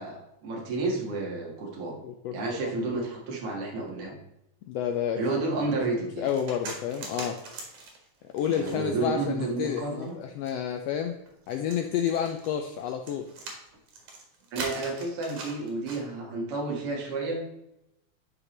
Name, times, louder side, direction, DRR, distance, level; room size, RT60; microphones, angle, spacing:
voice 1, 0.0-1.9 2.3-4.2 5.1-6.3 8.5-10.2 14.5-17.5, right 3 dB, 55° right, -1 dB, 2.5 m, -31 dB
voice 2, 2.0-2.7 4.7-5.7 6.0-7.4 8.3-11.2 11.5-13.3 16.9-17.0, left 9 dB, 80° left, 5 dB, 1.4 m, -30 dB
sound 1, 6.2-9.1 9.6-16.0, right 3 dB, 90° right, 3.0 m, -42 dB
11.0 x 4.9 x 3.2 m, 0.84 s
omnidirectional pair, 3.4 m